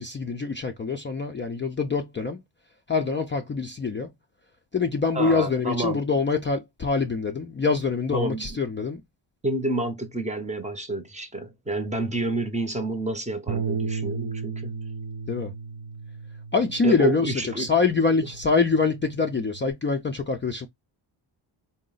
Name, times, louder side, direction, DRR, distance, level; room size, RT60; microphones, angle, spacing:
voice 1, 0.0-2.4 2.9-4.1 4.7-9.0 15.3-15.5 16.5-20.7, left 4 dB, 25° left, 0.4 m, -25 dB
voice 2, 5.1-6.0 8.1-8.6 9.4-14.8 16.8-17.7, right 2 dB, 15° right, 0.7 m, -29 dB
Bass guitar, 13.5-19.7, right 5 dB, 50° right, 0.6 m, -35 dB
3.8 x 2.1 x 3.8 m
cardioid pair, 105°, 50 cm